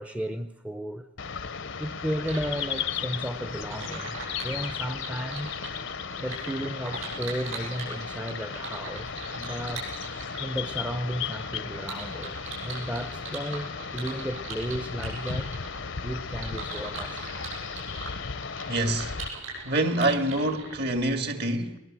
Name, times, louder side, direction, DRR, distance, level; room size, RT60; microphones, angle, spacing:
voice 1, 0.0-1.4 1.8-5.6 6.2-9.9 10.4-15.6 16.0-17.2 18.4-18.6 20.5-20.6, equal, 5° right, 0.7 m, -34 dB
sound 1, 1.2-19.3, left 6 dB, 65° left, 0.9 m, -35 dB
sound 2, 2.2-21.0, right 3 dB, 85° right, 8.0 m, -41 dB
voice 2, 18.7-19.1 19.6-21.8, right 1 dB, 55° right, 2.0 m, -26 dB
22.0 x 21.0 x 7.5 m
head